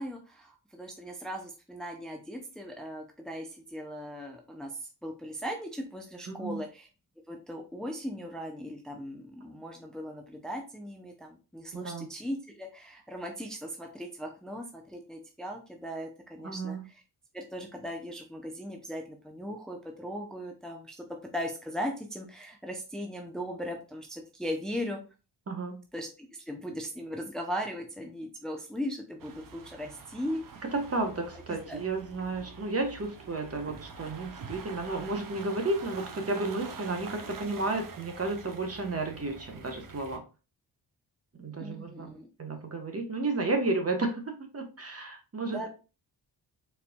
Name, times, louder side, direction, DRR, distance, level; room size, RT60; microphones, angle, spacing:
voice 1, 0.0-6.9 7.3-17.0 17.3-25.0 25.9-30.7 31.3-31.8 41.6-42.3 45.4-45.7, equal, ahead, 2 dB, 0.7 m, -38 dB
voice 2, 6.3-6.6 11.7-12.1 16.4-16.8 25.5-25.7 30.7-40.2 41.4-42.1 42.4-45.6, right 2 dB, 35° right, 4 dB, 1.1 m, -32 dB
sound 1, 29.2-40.2, right 5 dB, 55° right, 0.8 m, -46 dB
4.4 x 4.0 x 2.2 m, 0.32 s
cardioid pair, 90°, 40 cm